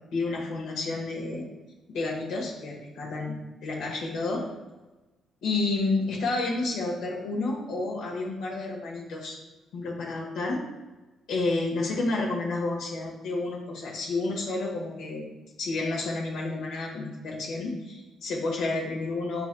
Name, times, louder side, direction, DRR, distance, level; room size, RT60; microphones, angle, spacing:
voice 1, 0.1-1.4 1.9-4.5 5.4-9.4 9.7-10.6 11.3-15.2 15.6-19.5, left 3 dB, 85° left, -3 dB, 1.2 m, -30 dB
6.0 x 4.0 x 2.2 m, 1.1 s
cardioid pair, 90°, 0 cm